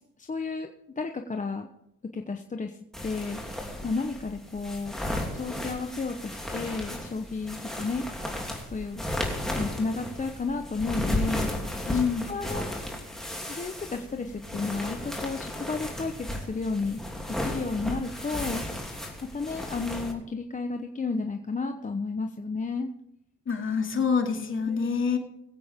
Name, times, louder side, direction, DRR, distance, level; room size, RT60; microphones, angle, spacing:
voice 1, 0.2-0.7 1.0-1.7 2.1-3.6 3.8-5.0 5.3-8.0 8.7-9.0 9.5-11.5 11.9-12.0 12.3-12.7 13.5-17.0 17.3-18.6 19.3-22.9 24.7-25.1, left 4 dB, 25° left, 4 dB, 1.0 m, -32 dB
sound 1, 2.9-20.1, left 1 dB, ahead, 2.9 m, -34 dB
voice 2, 11.9-12.4 23.5-25.2, left 6 dB, 40° left, 3 dB, 2.5 m, -26 dB
22.0 x 8.5 x 3.6 m, 0.80 s
cardioid pair, 90°, 30 cm